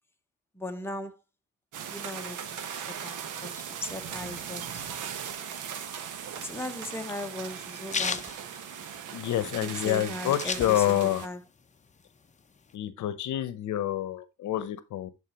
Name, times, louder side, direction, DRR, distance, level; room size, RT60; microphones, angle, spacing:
voice 1, 0.5-1.2 1.9-2.6 2.9-4.9 6.3-8.3 9.6-11.4, left 1 dB, 10° left, 1.1 m, -38 dB
sound 1, 1.7-11.3, right 8 dB, 80° right, 1.2 m, -38 dB
sound 2, 6.2-9.3 9.7-9.8 9.9-11.2 11.6-12.7, left 5 dB, 25° left, 0.7 m, -34 dB
voice 2, 9.1-11.2 12.7-15.1, left 12 dB, 75° left, 0.8 m, -28 dB
11.5 x 4.2 x 2.9 m
cardioid pair, 90°, 30 cm